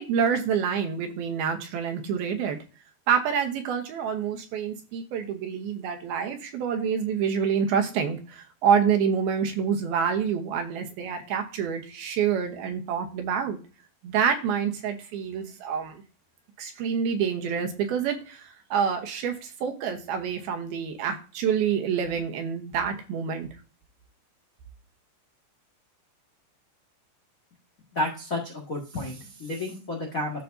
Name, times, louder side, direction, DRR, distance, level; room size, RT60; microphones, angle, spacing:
voice 1, 0.0-2.6 3.1-13.6 14.0-16.0 16.6-23.5, right 7 dB, 70° right, 5 dB, 2.6 m, -27 dB
voice 2, 27.9-30.4, left 2 dB, 80° left, -1 dB, 0.7 m, -31 dB
14.0 x 4.9 x 2.7 m, 0.35 s
omnidirectional pair, 4.9 m